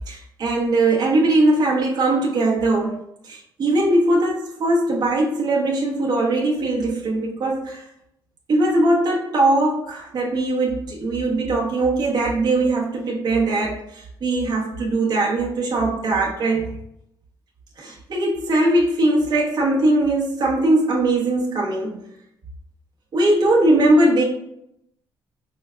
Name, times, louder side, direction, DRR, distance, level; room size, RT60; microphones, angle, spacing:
voice 1, 0.1-2.9 3.2-7.8 8.5-16.7 17.8-22.0 23.1-24.2, right 2 dB, 50° right, -4 dB, 1.0 m, -20 dB
5.6 x 2.2 x 2.4 m, 0.77 s
cardioid pair, 140°, 9 cm